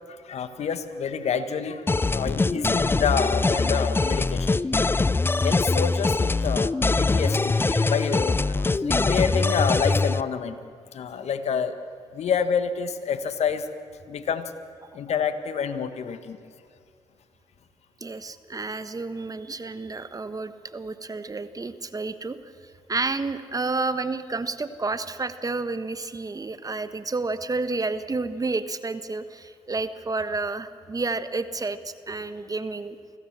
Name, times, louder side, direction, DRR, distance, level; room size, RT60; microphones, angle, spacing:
voice 1, 0.1-4.6 5.4-10.6 10.9-11.7 12.1-13.7 14.1-14.5 14.9-16.5, left 7 dB, 65° left, 10 dB, 1.6 m, -28 dB
sound 1, 1.9-10.2, left 3 dB, 20° left, 0.5 m, -23 dB
voice 2, 18.0-22.4 22.9-33.0, right 3 dB, 30° right, 12 dB, 1.3 m, -30 dB
24.5 x 16.5 x 7.4 m, 2.3 s
supercardioid pair, 55°, 12 cm